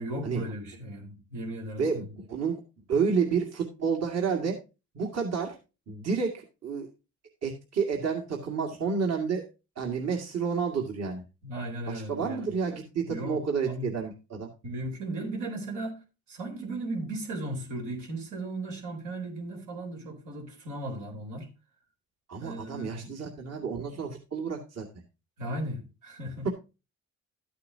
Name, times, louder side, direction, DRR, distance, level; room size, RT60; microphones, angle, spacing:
voice 1, 0.0-2.1 11.4-12.5 13.1-13.9 14.6-16.0 16.3-21.5 22.4-23.1 25.4-26.5, right 1 dB, 90° right, 3.9 m, -36 dB
voice 2, 1.8-2.6 2.9-4.6 4.9-5.5 5.9-6.9 7.4-9.4 9.8-11.2 11.9-14.5 22.3-24.9, right 5 dB, 60° right, 2.2 m, -30 dB
13.0 x 8.7 x 2.8 m
cardioid pair, 90°, 30 cm